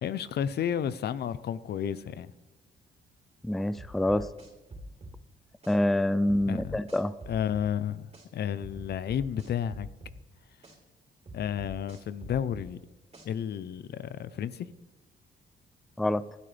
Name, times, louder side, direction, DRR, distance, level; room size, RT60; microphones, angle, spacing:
voice 1, 0.0-2.3 6.5-6.8 7.3-9.9 11.3-12.8 13.2-14.7, left 9 dB, 60° left, 16 dB, 0.7 m, -32 dB
voice 2, 3.4-4.3 5.7-7.1 16.0-16.2, left 1 dB, ahead, 15 dB, 0.4 m, -26 dB
sound 1, 3.8-5.2 5.6-5.8 6.3-7.7 8.1-8.3 8.6-10.2 10.6-10.8 11.3-12.7 13.1-13.3, right 1 dB, 35° right, 3.7 m, -45 dB
19.5 x 12.5 x 3.4 m, 1.1 s
cardioid pair, 100°, 19 cm